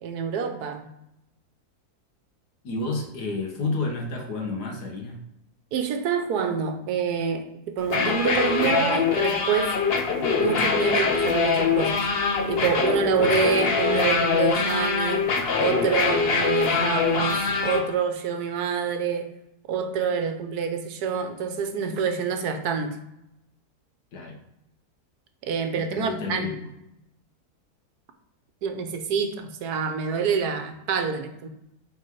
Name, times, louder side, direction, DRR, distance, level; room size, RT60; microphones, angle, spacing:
voice 1, 0.0-0.9 5.7-9.8 10.4-12.0 12.5-15.3 15.6-19.3 19.7-23.0 25.4-26.5 28.6-31.5, right 6 dB, 80° right, 7 dB, 1.3 m, -27 dB
voice 2, 2.6-5.2 24.1-24.4 25.8-26.7, left 3 dB, 85° left, 2 dB, 1.8 m, -30 dB
sound 1, 7.8-17.8, left 5 dB, 45° left, 0.9 m, -23 dB
5.9 x 4.3 x 4.6 m, 0.84 s
omnidirectional pair, 1.7 m